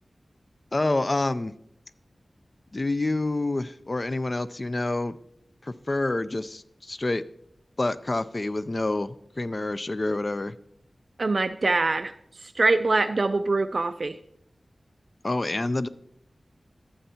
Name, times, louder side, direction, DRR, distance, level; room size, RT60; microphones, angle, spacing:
voice 1, 0.7-1.5 2.7-5.2 5.6-7.2 7.8-10.5 15.2-15.9, left 2 dB, 35° left, 14 dB, 0.4 m, -27 dB
voice 2, 11.2-12.1 12.6-14.2, right 3 dB, 55° right, 8 dB, 0.3 m, -23 dB
12.5 x 7.7 x 2.8 m, 0.72 s
wide cardioid pair, 85°, 0 cm